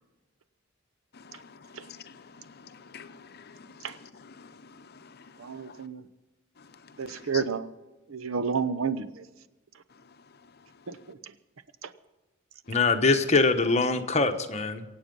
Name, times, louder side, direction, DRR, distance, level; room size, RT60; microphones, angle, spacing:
voice 1, 2.9-4.5 7.1-7.4, left 8 dB, 50° left, 0.8 m, -46 dB
voice 2, 5.4-6.0 7.0-7.7 8.1-9.3 10.9-11.3 11.8-11.9, right 5 dB, 80° right, 0.8 m, -31 dB
voice 3, 12.7-14.8, left 3 dB, 35° left, 1.1 m, -23 dB
24.0 x 8.8 x 5.4 m
head